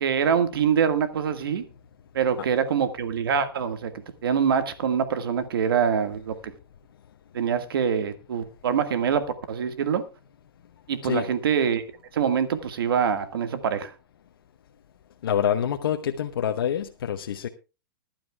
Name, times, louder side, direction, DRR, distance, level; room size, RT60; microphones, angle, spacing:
voice 1, 0.0-1.6 2.1-3.9 4.2-6.5 7.3-10.0 10.9-11.8 12.1-13.9, right 7 dB, 80° right, 10 dB, 1.7 m, -24 dB
voice 2, 15.2-17.5, left 9 dB, 80° left, 4 dB, 1.0 m, -26 dB
20.5 x 12.0 x 2.3 m, 0.30 s
hypercardioid pair, 145°, 12 cm